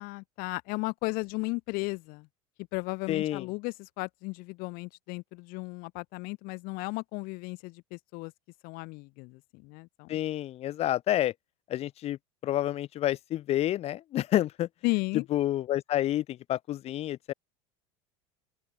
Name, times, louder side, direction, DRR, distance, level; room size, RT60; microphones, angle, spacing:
voice 1, 0.0-2.3 2.6-8.3 8.6-10.2 14.8-15.3, left 26 dB, 60° left, 3.7 m, -35 dB
voice 2, 3.1-3.4 10.1-11.3 11.7-12.2 12.4-14.7 15.3-17.3, left 13 dB, 40° left, 0.5 m, -29 dB
open air
hypercardioid pair, 80°, 17 cm